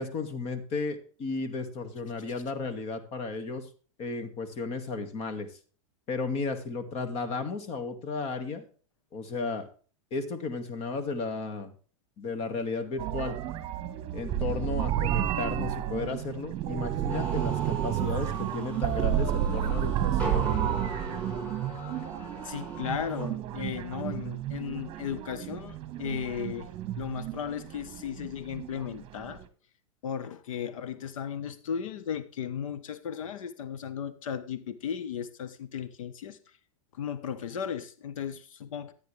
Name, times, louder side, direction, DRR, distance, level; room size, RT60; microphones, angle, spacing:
voice 1, 0.0-3.7 4.0-5.5 6.1-8.6 9.1-9.6 10.1-11.7 12.2-13.4 14.1-20.5, left 4 dB, 35° left, 2.1 m, -34 dB
sound 1, 13.0-29.4, right 11 dB, 35° right, 1.4 m, -31 dB
sound 2, 17.1-23.2, right 1 dB, 5° left, 6.9 m, -40 dB
voice 2, 22.4-26.7 27.0-29.4 30.0-36.4 36.9-38.9, left 8 dB, 80° left, 1.2 m, -35 dB
13.0 x 9.3 x 3.4 m
hypercardioid pair, 130°, 17 cm